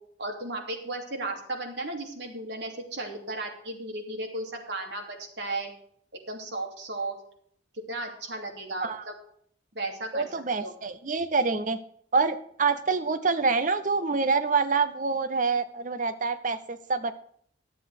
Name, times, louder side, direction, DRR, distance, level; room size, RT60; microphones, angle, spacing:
voice 1, 0.2-5.7 6.3-7.1 7.9-9.1 9.7-10.3 10.6-10.7, right 2 dB, 65° right, 1 dB, 2.9 m, -35 dB
voice 2, 10.1-11.8 12.1-17.1, right 4 dB, 45° right, 10 dB, 0.7 m, -26 dB
11.5 x 7.6 x 6.7 m, 0.63 s
head